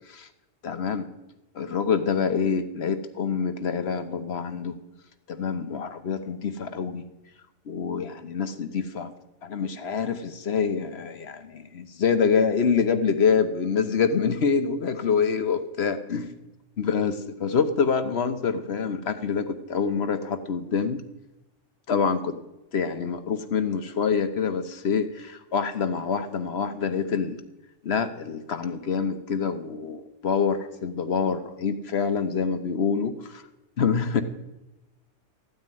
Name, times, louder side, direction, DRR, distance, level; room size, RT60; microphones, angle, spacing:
voice 1, 0.6-1.1 1.5-4.7 5.3-7.1 7.7-9.1 9.4-16.3 16.8-21.0 21.9-22.4 22.7-27.4 27.8-33.4 33.8-34.2, left 6 dB, 60° left, 10 dB, 1.2 m, -26 dB
13.5 x 9.5 x 9.1 m, 0.98 s
omnidirectional pair, 1.3 m